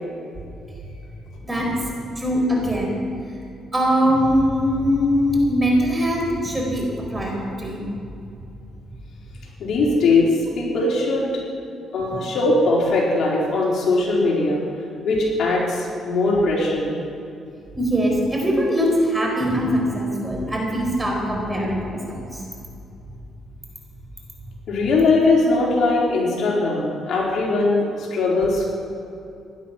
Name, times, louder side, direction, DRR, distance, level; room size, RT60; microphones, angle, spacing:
voice 1, 2.2-2.9 3.7-7.8 12.1-12.2 17.8-22.4, equal, 15° right, 0 dB, 4.4 m, -21 dB
voice 2, 9.6-11.3 11.9-14.6 15.0-17.0 24.7-28.9, left 2 dB, 65° left, -3 dB, 4.0 m, -20 dB
16.5 x 11.5 x 5.9 m, 2.6 s
cardioid pair, 90°, 0 cm